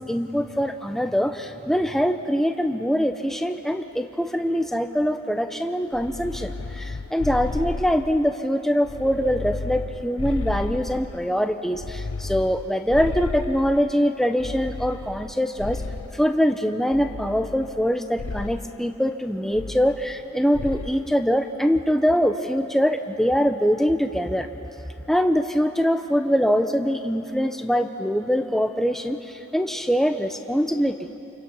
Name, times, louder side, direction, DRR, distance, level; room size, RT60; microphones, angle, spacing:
voice 1, 0.0-15.8 16.1-24.5 25.1-31.1, equal, ahead, 6 dB, 0.9 m, -23 dB
sound 1, 5.9-8.4 8.8-11.3 11.7-13.9 14.4-16.3 16.9-17.9 18.2-18.7 19.5-20.3 20.5-21.0, left 3 dB, 90° left, 0.7 m, -33 dB
29.0 x 27.5 x 5.7 m, 3.0 s
head